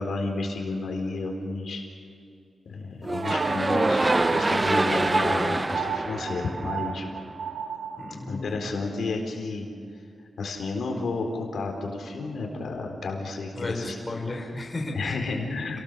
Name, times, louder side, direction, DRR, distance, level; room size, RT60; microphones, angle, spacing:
voice 1, 0.0-1.8 2.7-7.1 8.3-9.7 10.4-14.2 14.9-15.8, left 3 dB, 65° left, 2 dB, 4.1 m, -31 dB
sound 1, 3.0-7.2, right 2 dB, 20° right, 0.6 m, -25 dB
sound 2, 3.2-8.1, right 7 dB, 80° right, 3.7 m, -35 dB
voice 2, 8.0-8.5 13.6-15.3, left 2 dB, 20° left, 1 dB, 3.6 m, -34 dB
29.0 x 19.0 x 7.0 m, 2.4 s
wide cardioid pair, 145°, 0 cm